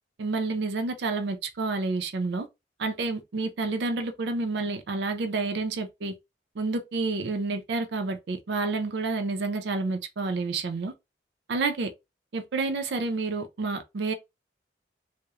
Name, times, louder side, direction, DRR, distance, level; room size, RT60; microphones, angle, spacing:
voice 1, 0.2-2.5 2.8-6.1 6.6-10.9 11.5-11.9 12.3-14.1, right 3 dB, 70° right, 0.4 m, -29 dB
2.8 x 2.0 x 2.3 m
head